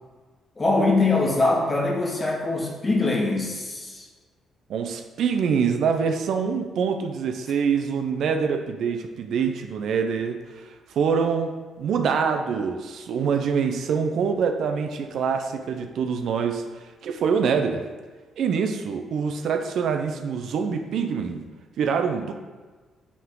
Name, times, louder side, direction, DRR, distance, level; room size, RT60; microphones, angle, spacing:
voice 1, 0.6-4.1, left 2 dB, 25° left, 0 dB, 1.3 m, -23 dB
voice 2, 4.7-11.5 11.8-17.8 18.4-21.4 21.8-22.3, right 6 dB, 70° right, 6 dB, 0.5 m, -25 dB
8.4 x 3.7 x 3.7 m, 1.4 s
cardioid pair, 90°, 0 cm